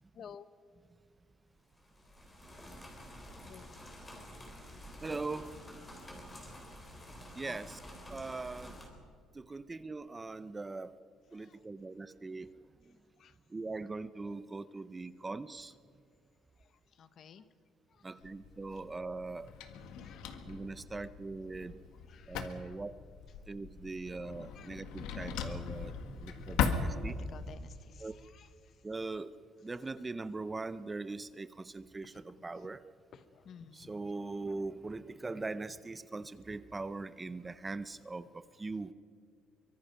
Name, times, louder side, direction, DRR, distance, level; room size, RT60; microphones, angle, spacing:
voice 1, 0.1-0.5 3.4-3.8 7.4-7.6 11.3-11.6 13.2-13.3 16.6-17.5 17.9-18.3 20.0-20.2 20.9-21.1 22.1-22.8 24.5-24.7 26.2-26.3 27.3-28.8 32.1-32.7 33.1-33.9, left 7 dB, 40° left, 13 dB, 1.0 m, -55 dB
sound 1, 1.6-8.9, equal, 15° left, 3.6 m, -50 dB
voice 2, 5.0-5.5 7.4-7.8 8.1-8.8 9.3-10.9 11.3-12.5 13.5-15.7 18.0-19.5 20.5-21.7 22.3-22.9 23.5-25.9 26.2-27.2 28.0-28.1 28.8-29.3 29.6-32.8 33.7-38.9, right 3 dB, 15° right, 14 dB, 0.5 m, -41 dB
Drawer open or close, 18.2-27.5, left 6 dB, 80° left, 1.8 m, -39 dB
24.0 x 24.0 x 5.7 m, 2.2 s
cardioid pair, 165°, 0 cm